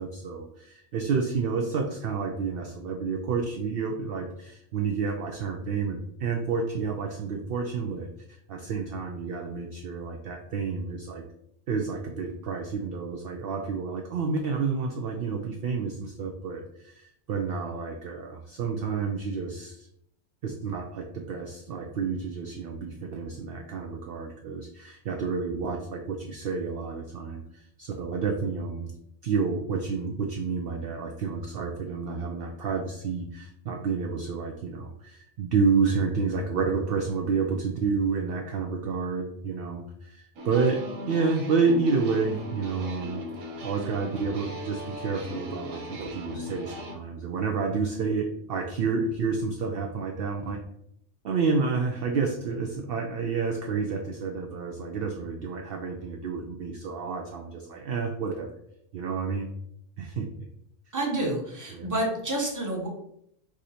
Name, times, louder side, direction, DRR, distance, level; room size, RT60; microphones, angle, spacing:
voice 1, 0.0-11.2 11.7-19.9 20.4-28.9 29.2-43.2 43.6-50.6 51.2-58.5 58.9-59.5 60.0-60.5 61.7-61.9, right 5 dB, 60° right, 2 dB, 0.7 m, -30 dB
sound 1, 40.4-47.0, equal, 80° right, 1.2 m, -39 dB
voice 2, 60.9-62.9, right 1 dB, 15° right, -1 dB, 1.0 m, -29 dB
4.8 x 2.6 x 4.2 m, 0.73 s
omnidirectional pair, 1.3 m